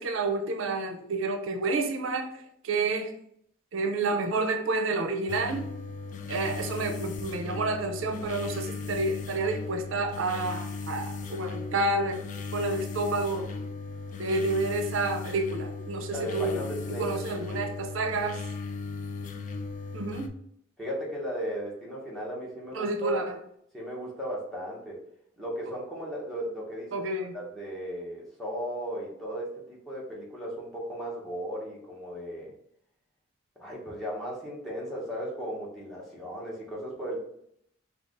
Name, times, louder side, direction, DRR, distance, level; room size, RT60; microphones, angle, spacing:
voice 1, 0.0-3.1 3.7-5.7 6.3-12.2 12.5-13.6 14.2-16.7 17.0-18.4 19.9-20.3 22.7-23.4 26.9-27.4, right 3 dB, 80° right, 6 dB, 0.5 m, -29 dB
sound 1, 5.3-20.3, left 4 dB, 40° left, 0.4 m, -37 dB
voice 2, 16.1-17.3 20.8-23.3 23.7-25.0 25.4-27.0 27.3-32.5 33.6-37.2, equal, ahead, -5 dB, 1.2 m, -36 dB
4.6 x 2.4 x 3.7 m, 0.71 s
head